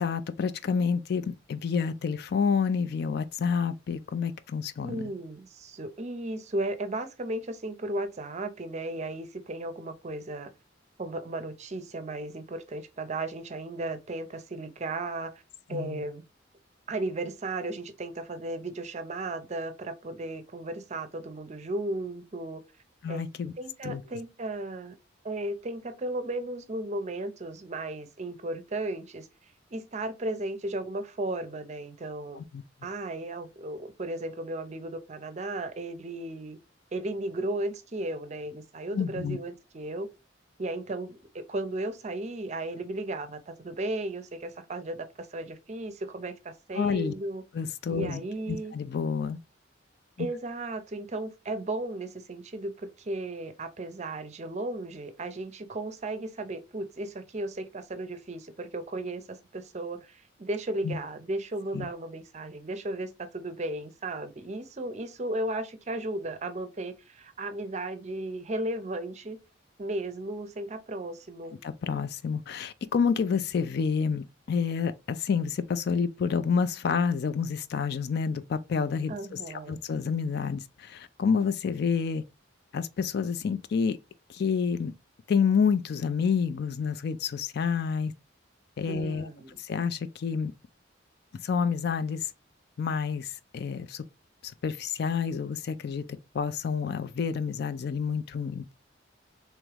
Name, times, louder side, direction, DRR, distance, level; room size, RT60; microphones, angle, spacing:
voice 1, 0.0-5.1 15.7-16.0 23.0-23.5 23.8-24.0 32.4-32.6 38.9-39.4 46.7-47.1 47.5-48.2 48.5-49.4 50.2-50.3 60.8-61.0 61.7-61.9 71.6-82.2 82.7-84.0 84.3-84.9 85.3-88.1 88.8-89.3 89.6-90.5 91.4-92.3 92.8-94.0 94.4-96.0 96.3-98.7, left 6 dB, 55° left, 0.4 m, -29 dB
voice 2, 4.8-10.5 11.0-15.4 15.7-16.2 16.9-22.6 23.1-23.3 23.6-25.0 25.2-29.3 29.7-32.4 32.8-36.6 36.9-40.1 40.6-47.4 47.9-48.7 50.2-69.4 69.8-71.6 79.1-79.8 88.9-89.6, right 2 dB, 35° right, 0.5 m, -35 dB
3.5 x 3.0 x 3.3 m
head